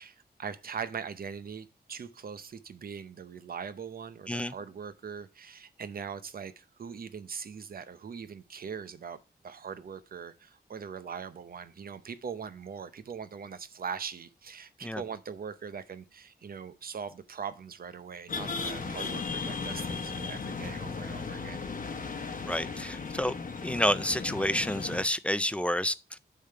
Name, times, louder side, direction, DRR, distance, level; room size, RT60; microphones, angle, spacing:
voice 1, 0.0-9.2 9.4-21.7, right 6 dB, 55° right, 0.7 m, -41 dB
sound 1, 18.3-25.0, left 4 dB, 50° left, 0.9 m, -36 dB
voice 2, 22.4-23.3 23.6-26.2, left 1 dB, 5° left, 0.3 m, -29 dB
8.4 x 3.7 x 5.6 m
wide cardioid pair, 145°, 18 cm